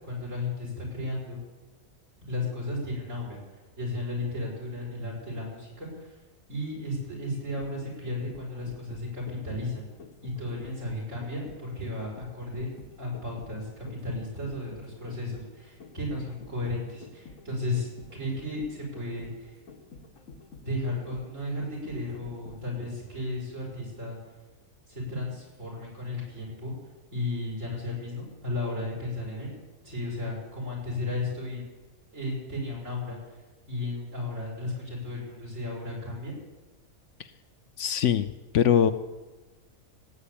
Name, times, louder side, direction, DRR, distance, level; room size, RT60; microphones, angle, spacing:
voice 1, 0.0-1.4 2.3-3.4 3.8-6.2 6.5-9.8 10.2-12.7 13.0-19.6 20.6-24.2 24.9-26.7 27.1-29.6 29.8-31.6 32.1-33.4 33.7-36.3, left 2 dB, 65° right, -4 dB, 6.5 m, -34 dB
sound 1, 7.3-23.2 23.5-23.6, left 4 dB, 80° left, 1.9 m, -49 dB
voice 2, 37.8-38.3 38.5-38.9, left 9 dB, 65° left, 11 dB, 0.9 m, -21 dB
17.0 x 8.5 x 8.4 m, 1.2 s
omnidirectional pair, 1.4 m